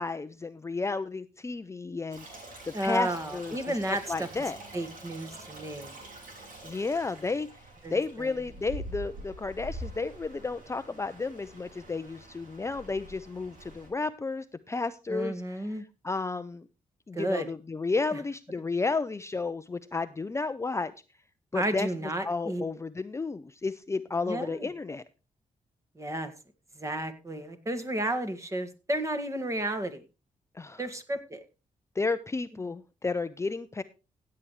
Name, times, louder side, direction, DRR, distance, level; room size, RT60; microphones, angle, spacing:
voice 1, 0.0-4.6 6.6-7.6 7.9-15.8 16.0-16.7 17.1-20.9 21.5-21.9 22.2-25.0 30.5-30.8 32.0-33.8, left 3 dB, 20° left, 12 dB, 0.5 m, -32 dB
Stream, 2.1-13.9, right 1 dB, 90° right, 6.7 m, -45 dB
voice 2, 2.7-4.3 4.7-6.0 7.8-8.4 15.1-15.8 17.1-17.5 18.1-18.2 21.5-22.7 24.2-24.7 26.0-26.3 26.8-30.0 30.8-31.4, right 1 dB, 20° right, 7 dB, 2.0 m, -32 dB
16.0 x 8.6 x 3.2 m, 0.30 s
cardioid pair, 95°, 14 cm